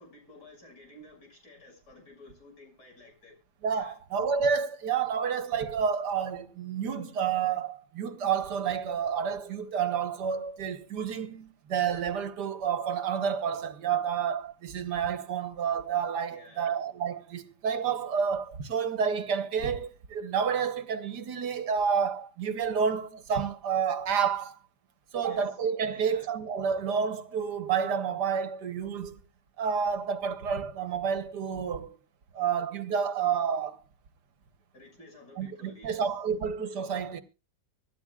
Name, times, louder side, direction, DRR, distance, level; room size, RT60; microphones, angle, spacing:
voice 1, 0.0-3.4 3.7-4.0 16.3-16.8 25.2-25.6 25.9-26.3 34.7-36.1, left 1 dB, 70° left, 7.2 m, -52 dB
voice 2, 3.6-24.6 25.1-29.2 29.6-32.0 32.3-33.8 35.4-37.2, right 7 dB, 75° right, 1.8 m, -29 dB
25.0 x 11.5 x 2.4 m
omnidirectional pair, 1.8 m